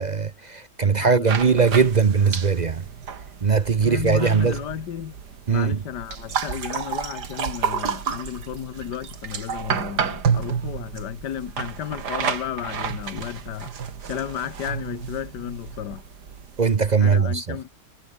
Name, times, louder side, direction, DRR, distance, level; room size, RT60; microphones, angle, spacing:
voice 1, 0.0-2.8 3.4-4.6 5.5-5.8 16.6-17.4, right 5 dB, 50° right, 0.5 m, -20 dB
voice 2, 0.8-1.7 3.8-5.1 5.5-13.7 14.1-16.0 17.0-17.7, left 10 dB, 75° left, 1.8 m, -33 dB
sound 1, 1.3-16.9, right 7 dB, 70° right, 2.3 m, -31 dB
omnidirectional pair, 1.8 m